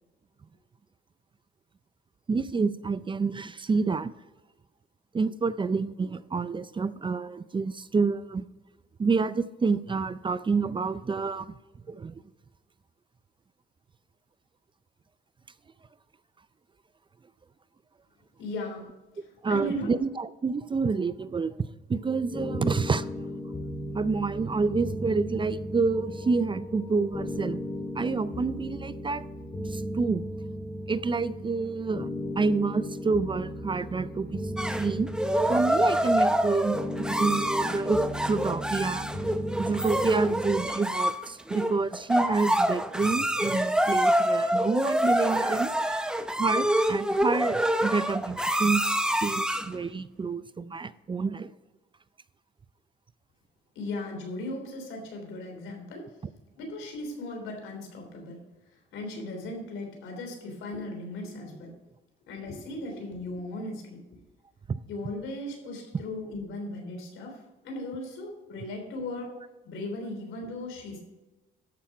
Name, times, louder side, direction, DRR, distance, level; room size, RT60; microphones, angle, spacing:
voice 1, 2.3-4.1 5.1-8.4 9.0-11.5 11.9-12.2 19.4-21.5 21.9-23.1 23.9-27.6 28.0-29.2 29.7-30.2 30.9-32.1 32.4-34.4 34.7-35.1 35.5-38.0 38.3-39.1 39.6-46.1 46.4-51.5 64.7-64.8, right 4 dB, 25° right, 15 dB, 0.4 m, -28 dB
voice 2, 18.4-18.9 19.5-19.9 53.8-56.1 56.6-58.4 58.9-61.7 62.3-64.0 64.9-69.4 69.6-71.0, left 1 dB, 85° left, 2 dB, 3.4 m, -37 dB
sound 1, 22.0-40.7, equal, 20° left, 2.6 m, -36 dB
sound 2, 34.6-49.8, equal, 5° right, 0.8 m, -26 dB
13.5 x 5.7 x 4.9 m, 1.1 s
cardioid pair, 90°, 20 cm